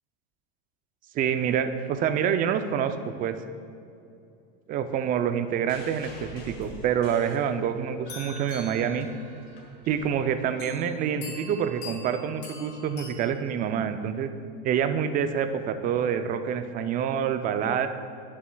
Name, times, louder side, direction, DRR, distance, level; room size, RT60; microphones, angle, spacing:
voice 1, 1.1-3.3 4.7-9.1 9.9-14.3 14.6-17.9, right 8 dB, 30° right, 9 dB, 0.4 m, -27 dB
sound 1, 5.7-7.9 8.3-10.9 11.8-11.9, left 1 dB, 90° left, 1.6 m, -47 dB
sound 2, 8.0-9.7 10.6-10.8 11.2-13.1, left 2 dB, 35° left, 1.6 m, -43 dB
10.5 x 7.2 x 2.2 m, 2.5 s
supercardioid pair, 130°, 29 cm